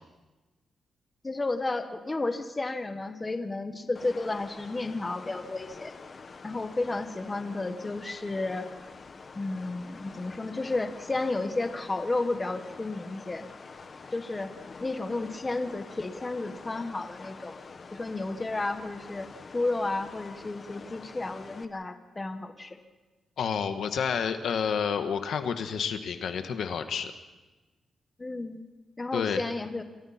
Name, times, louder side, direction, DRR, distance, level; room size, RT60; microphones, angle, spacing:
voice 1, 1.2-5.9 6.4-8.7 9.3-13.5 14.1-17.6 17.9-22.8 28.2-28.6 29.0-29.8, left 2 dB, 20° left, 7 dB, 1.5 m, -32 dB
sound 1, 3.9-21.6, left 4 dB, 40° left, 1.4 m, -46 dB
voice 2, 23.4-27.1 29.1-29.4, left 7 dB, 70° left, 7 dB, 1.5 m, -29 dB
29.0 x 25.5 x 4.4 m, 1.2 s
cardioid pair, 125°, 0 cm